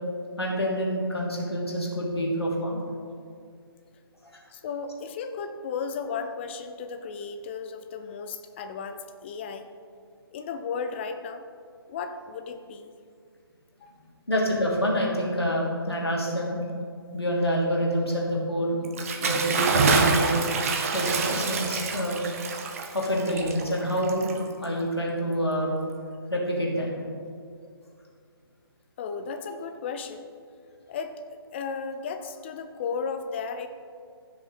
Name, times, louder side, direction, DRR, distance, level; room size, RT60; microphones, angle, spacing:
voice 1, 0.4-2.8 4.2-4.3 14.3-16.6 17.1-18.8 19.2-20.4 20.9-22.2 22.9-24.3 24.6-25.7 26.3-26.9, equal, 85° left, -3 dB, 2.7 m, -27 dB
voice 2, 4.5-9.7 10.3-11.4 11.9-12.9 13.8-13.9 29.0-30.3 30.9-33.7, left 5 dB, 25° left, 9 dB, 0.6 m, -34 dB
Bathtub (filling or washing) / Splash splatter, 18.8-24.8, right 4 dB, 35° right, 0.9 m, -27 dB
15.0 x 6.2 x 4.1 m, 2.2 s
figure-of-eight pair, 140°, 13 cm